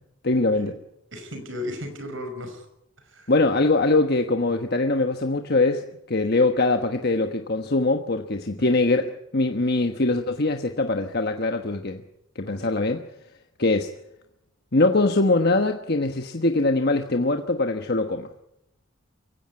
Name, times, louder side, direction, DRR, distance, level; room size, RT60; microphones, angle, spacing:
voice 1, 0.2-0.7 3.3-12.0 12.3-13.0 13.6-13.9 14.7-18.3, left 2 dB, 50° left, 5 dB, 1.2 m, -22 dB
voice 2, 1.1-2.7 3.0-3.3 4.5-4.6 8.6-8.7 12.5-12.7, left 1 dB, 65° right, 7 dB, 5.7 m, -36 dB
23.5 x 16.5 x 9.6 m, 0.86 s
head